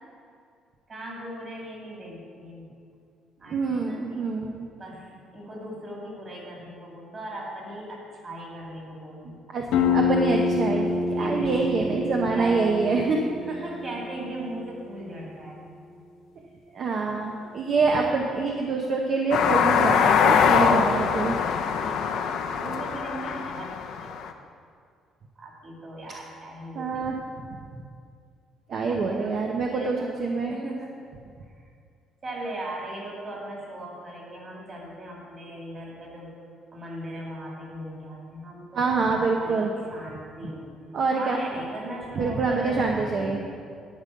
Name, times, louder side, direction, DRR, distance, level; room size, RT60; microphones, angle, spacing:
voice 1, 0.9-2.7 3.4-4.3 4.8-9.4 11.1-11.7 12.3-12.7 13.5-15.6 21.7-24.2 25.4-27.0 29.0-30.2 30.5-31.2 32.2-36.3 36.7-40.7 41.2-43.4, right 1 dB, 25° right, -3 dB, 2.5 m, -38 dB
voice 2, 3.5-4.7 9.5-13.2 16.7-21.4 26.8-27.1 28.7-30.6 38.7-39.7 40.9-41.4 42.1-43.4, right 4 dB, 40° right, 1 dB, 0.8 m, -26 dB
sound 1, 9.7-15.1, left 4 dB, 85° left, 1.3 m, -27 dB
sound 2, 19.3-24.3, left 7 dB, 60° left, 0.7 m, -23 dB
11.5 x 5.4 x 8.5 m, 2.3 s
cardioid pair, 170°, 0 cm